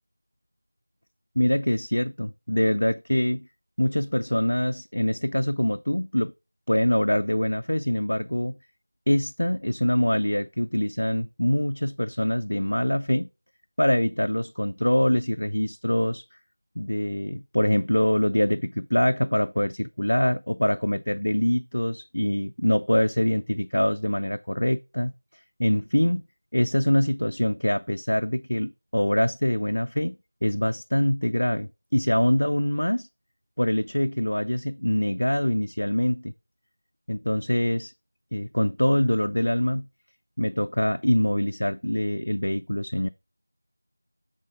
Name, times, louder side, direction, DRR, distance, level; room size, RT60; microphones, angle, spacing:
voice 1, 1.4-3.5 3.8-6.3 6.7-8.6 9.1-13.3 13.8-16.2 16.8-25.1 25.6-26.2 26.5-30.1 30.4-33.1 33.6-36.3 37.1-37.9 38.3-39.9 40.4-43.1, left 1 dB, 80° left, 0.4 m, -24 dB
7.5 x 3.9 x 4.5 m
figure-of-eight pair, 175°, 0 cm